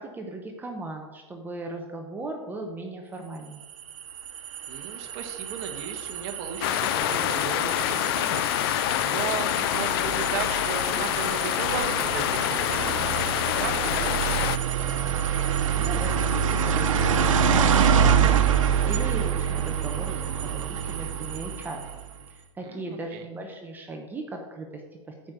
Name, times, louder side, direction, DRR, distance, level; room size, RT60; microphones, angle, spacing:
voice 1, 0.0-3.7 15.7-21.8 22.3-24.8 25.1-25.2, right 2 dB, 10° right, 2 dB, 0.9 m, -37 dB
sound 1, 3.6-22.1, right 7 dB, 90° right, 1.0 m, -26 dB
voice 2, 4.7-8.4 9.0-13.3 13.6-14.5 22.6-23.2, right 7 dB, 45° right, 4 dB, 1.4 m, -36 dB
sound 2, 6.6-14.6, left 14 dB, 50° left, 0.4 m, -26 dB
9.3 x 5.3 x 6.7 m, 1.2 s
supercardioid pair, 145°, 16 cm